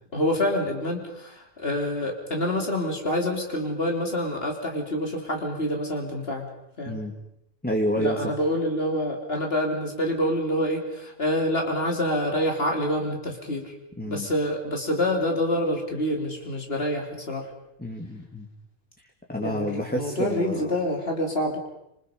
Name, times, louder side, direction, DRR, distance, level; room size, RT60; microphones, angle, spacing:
voice 1, 0.1-6.5 6.8-7.0 7.9-13.7 14.0-17.5 19.4-21.6, left 1 dB, 75° left, 2 dB, 3.5 m, -27 dB
voice 2, 7.6-8.3 14.0-14.3 17.8-18.5 19.0-20.7, equal, 10° left, 1 dB, 2.0 m, -29 dB
27.0 x 27.0 x 5.2 m, 0.81 s
omnidirectional pair, 1.0 m